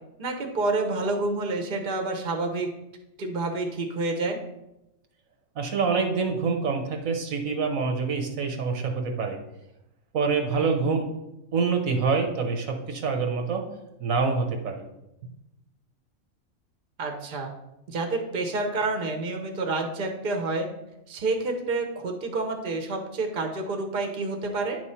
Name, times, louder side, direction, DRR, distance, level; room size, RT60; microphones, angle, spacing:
voice 1, 0.2-2.7 3.2-4.4 10.6-10.9 17.0-17.5 17.9-20.7 21.1-24.8, right 3 dB, 45° right, 4 dB, 1.0 m, -28 dB
voice 2, 5.6-9.4 10.1-11.0 11.5-13.6 14.0-14.8, right 4 dB, 85° right, 3 dB, 1.4 m, -26 dB
9.5 x 3.2 x 5.6 m, 0.89 s
omnidirectional pair, 1.4 m